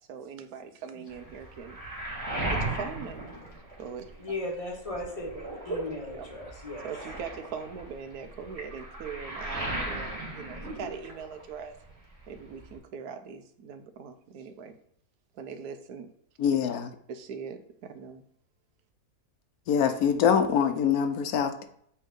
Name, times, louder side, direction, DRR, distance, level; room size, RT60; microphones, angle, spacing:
voice 1, 0.1-1.8 2.5-3.3 3.8-4.1 6.1-6.3 6.8-11.7 12.3-14.7 15.3-16.1 17.1-18.2, right 6 dB, 80° right, 1.2 m, -41 dB
Waves surf, 1.1-4.3 4.6-11.6 11.8-12.8, right 2 dB, 25° right, 1.8 m, -37 dB
voice 2, 4.2-6.9, left 2 dB, 25° left, 1.2 m, -37 dB
voice 3, 16.4-16.9 19.7-21.6, left 7 dB, 75° left, 1.2 m, -24 dB
8.3 x 3.5 x 3.6 m
omnidirectional pair, 1.6 m